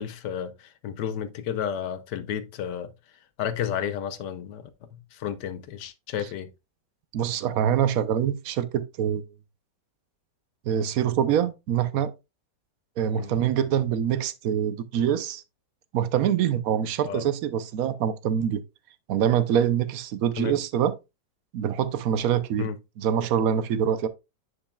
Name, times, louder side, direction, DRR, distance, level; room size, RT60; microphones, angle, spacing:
voice 1, 0.0-2.9 3.4-6.5 13.2-13.3 17.1-17.2 20.4-20.6 22.6-22.8, left 9 dB, 75° left, 1.3 m, -32 dB
voice 2, 7.1-9.2 10.7-12.1 13.0-15.4 15.9-18.6 19.1-21.0 21.5-22.7 23.0-24.1, right 9 dB, 65° right, 1.0 m, -25 dB
10.0 x 5.5 x 2.3 m
omnidirectional pair, 1.9 m